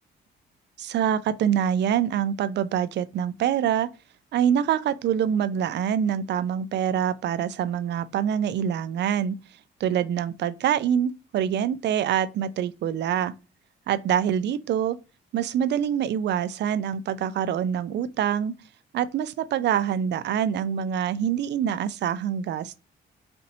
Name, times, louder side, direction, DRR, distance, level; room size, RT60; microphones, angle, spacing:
voice 1, 0.8-3.9 4.3-9.4 9.8-13.3 13.9-15.0 15.3-18.5 18.9-22.8, right 9 dB, 60° right, 0.4 m, -25 dB
4.2 x 2.7 x 2.6 m
cardioid pair, 90°, 20 cm